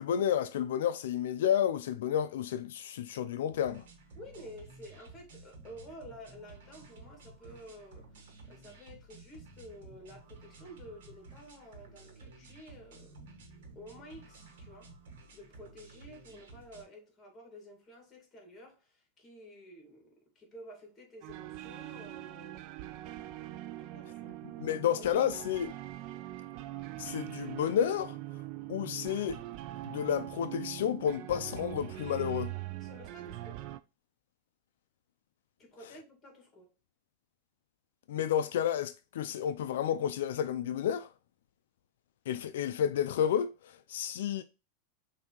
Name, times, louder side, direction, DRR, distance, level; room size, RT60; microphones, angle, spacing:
voice 1, 0.0-3.8 24.6-25.7 27.0-28.2 28.7-29.4 29.8-32.5 38.1-41.1 42.3-44.4, left 9 dB, 80° left, 0.3 m, -31 dB
sound 1, 3.5-16.8, right 3 dB, 80° right, 1.4 m, -53 dB
voice 2, 4.2-8.2 8.5-13.2 13.8-14.9 15.3-22.6 22.9-23.0 23.8-24.4 25.0-25.1 32.8-33.6 35.6-36.7, equal, 20° left, 1.8 m, -51 dB
sound 2, 21.2-33.8, right 15 dB, 45° right, 0.3 m, -42 dB
5.7 x 2.7 x 2.9 m
supercardioid pair, 150°, 0 cm